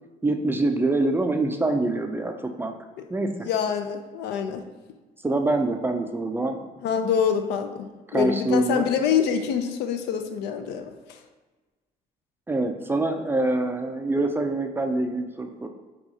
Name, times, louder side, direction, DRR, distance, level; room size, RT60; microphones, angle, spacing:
voice 1, 0.2-2.7 3.1-3.3 5.2-6.7 8.1-8.9 12.5-15.7, right 2 dB, 15° right, 5 dB, 0.3 m, -25 dB
voice 2, 3.4-4.6 6.8-11.2, left 7 dB, 85° left, 6 dB, 0.4 m, -26 dB
5.7 x 2.3 x 2.8 m, 1.2 s
cardioid pair, 110°, 17 cm